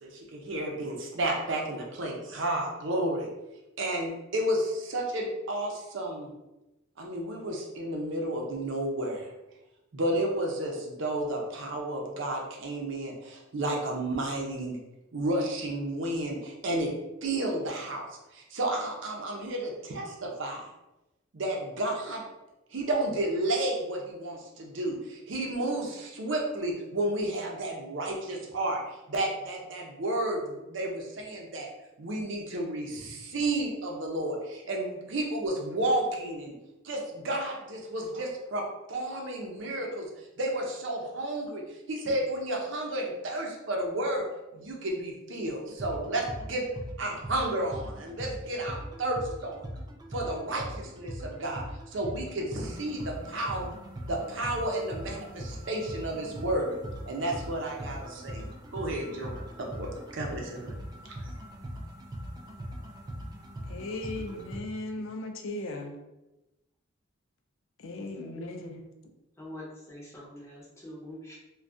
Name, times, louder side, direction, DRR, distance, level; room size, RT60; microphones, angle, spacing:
voice 1, 0.0-3.3 3.8-6.3 7.0-9.3 9.9-14.8 15.1-16.9 17.2-18.1 18.3-20.7 21.3-22.2 22.7-31.7 32.0-36.5 36.8-40.1 40.4-41.6 41.9-44.3 44.5-46.6 47.0-49.6 50.1-51.6 51.9-53.8 54.1-56.8 57.0-60.7 61.2-61.3, right 1 dB, 65° right, 0 dB, 0.6 m, -32 dB
sound 1, 45.7-64.6, equal, 20° right, 0.3 m, -41 dB
voice 2, 63.7-65.9 67.8-68.8, left 2 dB, 80° left, 4 dB, 0.4 m, -37 dB
voice 3, 69.4-71.4, left 1 dB, 15° left, -5 dB, 0.7 m, -44 dB
2.5 x 2.2 x 3.4 m, 0.98 s
head